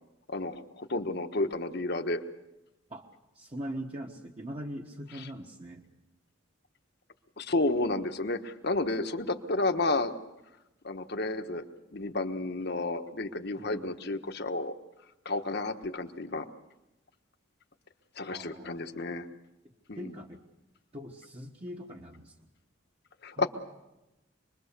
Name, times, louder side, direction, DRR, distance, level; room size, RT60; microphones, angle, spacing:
voice 1, 0.3-2.2 5.2-5.3 7.4-10.2 10.8-14.7 15.2-16.5 18.2-19.3 19.9-20.1 23.2-23.5, left 2 dB, 55° left, 8 dB, 1.3 m, -31 dB
voice 2, 3.3-5.8 13.6-14.0 18.3-18.8 19.9-20.4 20.9-22.3 23.4-23.5, equal, 30° right, 1 dB, 1.3 m, -41 dB
26.0 x 21.5 x 6.8 m, 0.96 s
head